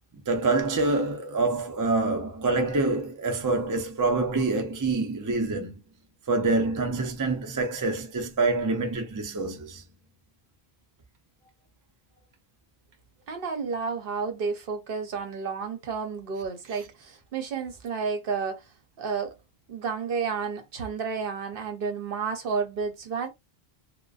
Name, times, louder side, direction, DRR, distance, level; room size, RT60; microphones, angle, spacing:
voice 1, 0.3-5.8 6.3-9.8, right 3 dB, 30° right, 0.4 m, -26 dB
voice 2, 13.3-18.6 19.0-19.4 19.7-23.3, right 5 dB, 65° right, 0.8 m, -31 dB
2.4 x 2.1 x 2.3 m
omnidirectional pair, 1.0 m